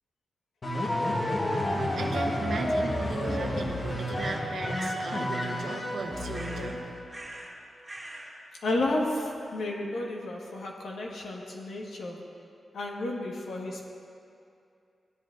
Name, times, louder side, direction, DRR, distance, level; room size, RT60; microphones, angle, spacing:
sound 1, 0.6-7.1, left 1 dB, 35° left, 1.3 m, -30 dB
voice 1, 1.9-6.9, right 3 dB, 75° right, 2 dB, 1.1 m, -36 dB
sound 2, 4.2-5.0 5.3-5.6 6.3-6.8 7.1-7.6 7.8-8.3, right 1 dB, 20° right, 2.1 m, -41 dB
voice 2, 8.6-12.2 12.7-13.9, left 2 dB, 85° left, -2 dB, 1.6 m, -32 dB
16.5 x 10.0 x 2.7 m, 2.5 s
wide cardioid pair, 145°, 0 cm